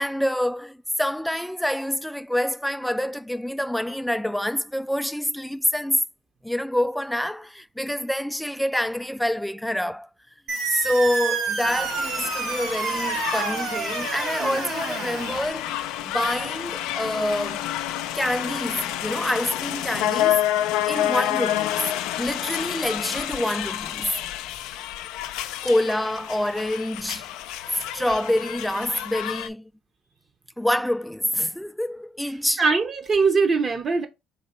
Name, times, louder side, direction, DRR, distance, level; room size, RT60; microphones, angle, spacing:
voice 1, 0.0-6.0 6.4-10.1 10.6-17.7 18.1-20.4 20.9-21.8 22.2-24.1 25.6-27.3 27.7-29.7 30.6-32.6, left 1 dB, 5° left, 0.3 m, -26 dB
sound 1, 10.5-15.5, right 6 dB, 60° right, 1.6 m, -29 dB
sound 2, 11.6-29.5, left 13 dB, 85° left, 0.4 m, -29 dB
voice 2, 32.6-34.1, right 4 dB, 35° right, 0.7 m, -21 dB
4.0 x 2.8 x 4.2 m
cardioid pair, 110°, 0 cm